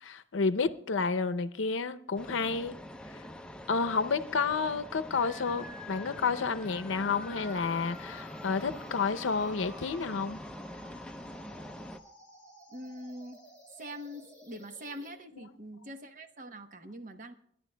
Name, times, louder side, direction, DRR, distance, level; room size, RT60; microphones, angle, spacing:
voice 1, 0.0-2.8 3.1-3.2 3.7-10.4, left 4 dB, 85° left, 11 dB, 0.6 m, -30 dB
sound 1, 2.2-12.0, left 1 dB, 5° left, 0.5 m, -44 dB
sound 2, 5.1-15.1, left 1 dB, 15° right, 6.1 m, -51 dB
voice 2, 12.7-13.4 13.8-17.3, equal, 45° right, 8 dB, 0.9 m, -43 dB
27.0 x 11.0 x 2.2 m, 0.67 s
head